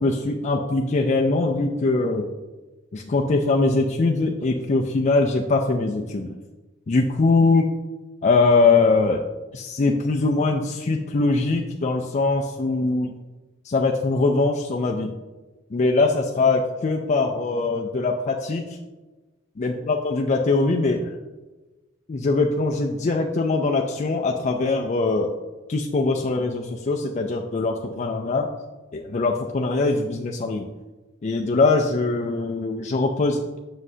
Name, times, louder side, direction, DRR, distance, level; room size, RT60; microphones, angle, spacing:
voice 1, 0.0-2.3 2.9-6.3 6.9-7.7 8.2-9.2 9.5-13.1 13.6-15.1 15.7-18.7 19.6-21.1 22.1-25.3 25.7-28.5 28.9-30.7 31.2-33.6, left 3 dB, 35° left, 1 dB, 0.4 m, -22 dB
7.5 x 6.1 x 2.7 m, 1.2 s
head